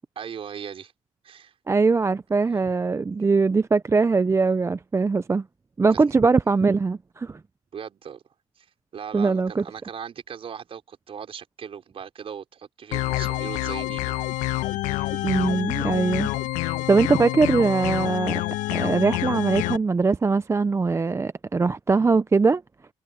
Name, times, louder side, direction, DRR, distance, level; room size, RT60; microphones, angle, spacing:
voice 1, 0.2-0.9 1.2-1.5 2.6-2.7 5.9-6.1 7.7-8.2 8.6-8.7 8.9-14.2, right 7 dB, 45° right, 5.2 m, -38 dB
voice 2, 1.7-5.5 5.8-7.4 9.1-9.6 15.2-16.3 16.6-18.4 18.7-22.6, right 4 dB, 20° right, 0.7 m, -21 dB
sound 1, 12.9-19.8, left 18 dB, 75° left, 1.2 m, -27 dB
supercardioid pair, 70°, 13 cm